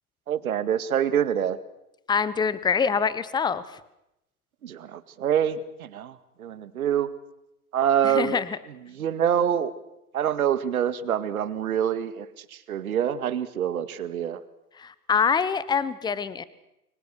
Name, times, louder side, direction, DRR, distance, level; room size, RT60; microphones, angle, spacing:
voice 1, 0.3-1.6 4.6-7.1 7.7-8.4 8.7-9.7 10.1-14.4, right 9 dB, 65° right, 13 dB, 2.1 m, -26 dB
voice 2, 2.1-3.6 8.0-8.5 14.8-16.4, left 6 dB, 10° left, 17 dB, 1.0 m, -25 dB
29.0 x 24.5 x 6.5 m, 0.86 s
figure-of-eight pair, 110°, 47 cm